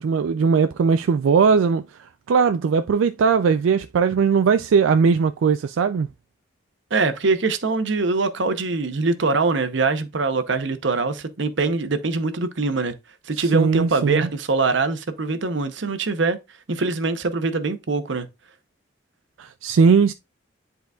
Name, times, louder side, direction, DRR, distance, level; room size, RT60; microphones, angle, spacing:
voice 1, 0.0-6.1 13.4-14.3 19.4-20.1, right 5 dB, 90° right, 0.3 m, -19 dB
voice 2, 6.9-12.9 13.3-16.4 16.7-18.3, right 3 dB, 70° right, 0.8 m, -23 dB
10.5 x 3.9 x 2.3 m
head